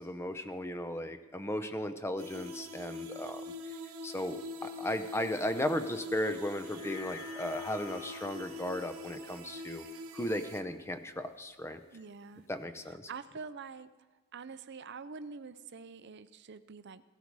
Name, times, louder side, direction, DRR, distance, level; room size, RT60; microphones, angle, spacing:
voice 1, 0.0-3.4 4.0-9.8 10.1-11.8 12.5-13.1, left 1 dB, 10° left, 10 dB, 0.7 m, -36 dB
sound 1, 2.2-10.6, left 1 dB, 75° right, 1.2 m, -43 dB
sound 2, 6.5-11.1 11.5-11.6, left 6 dB, 75° left, 1.7 m, -51 dB
voice 2, 11.9-12.5 12.9-13.9 14.3-17.0, right 5 dB, 55° right, 13 dB, 0.6 m, -46 dB
16.5 x 12.5 x 4.8 m, 1.3 s
head